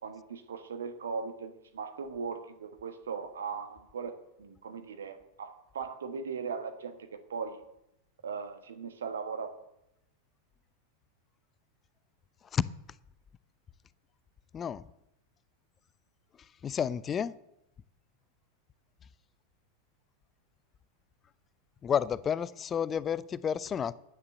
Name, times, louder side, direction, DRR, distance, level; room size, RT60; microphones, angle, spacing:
voice 1, 0.0-7.6 8.2-9.5, right 5 dB, 65° right, 8 dB, 1.4 m, -39 dB
voice 2, 16.6-17.3 21.8-23.9, left 8 dB, 25° left, 19 dB, 0.5 m, -30 dB
10.5 x 9.6 x 6.6 m, 0.83 s
figure-of-eight pair, 90°, 0 cm